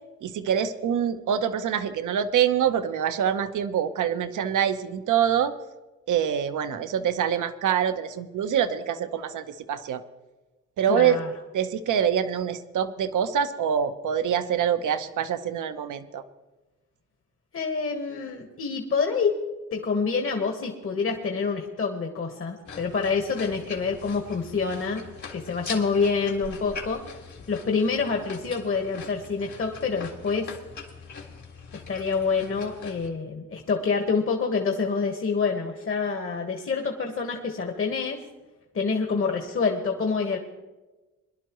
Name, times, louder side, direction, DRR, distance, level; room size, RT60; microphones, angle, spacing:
voice 1, 0.2-5.5 6.1-10.0 10.8-11.2 11.5-16.2, right 8 dB, 80° right, 10 dB, 0.9 m, -25 dB
voice 2, 10.9-11.3 17.5-19.4 19.7-27.0 27.5-30.5 31.7-38.2 38.7-40.4, left 5 dB, 45° left, 3 dB, 1.5 m, -27 dB
sound 1, 22.6-33.1, left 5 dB, 70° left, 2.2 m, -42 dB
22.0 x 11.5 x 3.1 m, 1.1 s
cardioid pair, 90°, 30 cm